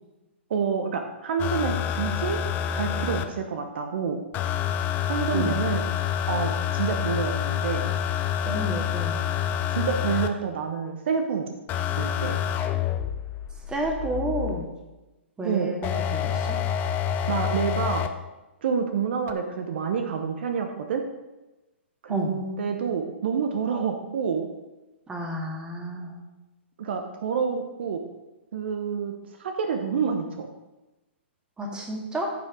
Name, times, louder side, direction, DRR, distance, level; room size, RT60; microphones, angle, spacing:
voice 1, 0.5-2.4 2.7-4.2 5.1-5.8 6.3-7.9 9.7-12.4 15.4-15.7 17.3-18.0 18.6-21.0 22.0-24.5 26.8-28.0 28.5-29.1 29.4-30.5, right 6 dB, 60° right, 6 dB, 1.0 m, -28 dB
sound 1, 1.4-3.3 4.3-10.3 11.7-14.7 15.8-18.1 19.3-19.4, left 9 dB, 30° left, 0.7 m, -27 dB
voice 2, 8.4-9.2 13.7-14.7 15.4-16.6 22.1-22.3 25.1-26.1 31.6-32.3, right 1 dB, 10° right, 0 dB, 2.0 m, -31 dB
14.5 x 5.4 x 3.8 m, 1.1 s
figure-of-eight pair, 120°, 7 cm